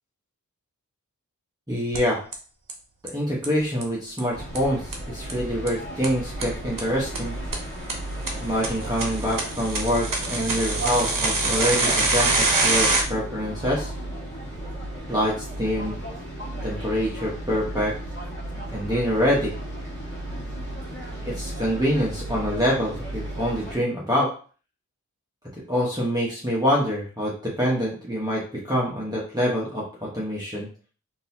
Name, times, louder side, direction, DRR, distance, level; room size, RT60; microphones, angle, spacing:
voice 1, 1.7-2.2 3.0-7.3 8.4-13.9 15.1-15.9 16.6-17.9 18.7-19.5 21.2-24.3 25.7-29.8 30.1-30.7, equal, 10° right, -7 dB, 1.1 m, -25 dB
sound 1, 1.9-2.0 2.3-2.4 2.7-2.8 3.1-3.2 3.4-3.5 3.8-3.9 4.2-4.3 4.6-4.7 4.9-5.0 5.3-5.4 5.7-5.8 6.0-6.1 6.4-6.5 6.8-6.9 7.2-7.3 7.5-7.6 7.9-8.0 8.3-8.4 8.6-13.0, right 3 dB, 75° right, 0.8 m, -24 dB
sound 2, 4.3-23.8, right 1 dB, 35° left, 1.5 m, -34 dB
3.9 x 2.7 x 2.8 m, 0.40 s
wide cardioid pair, 45°, 33 cm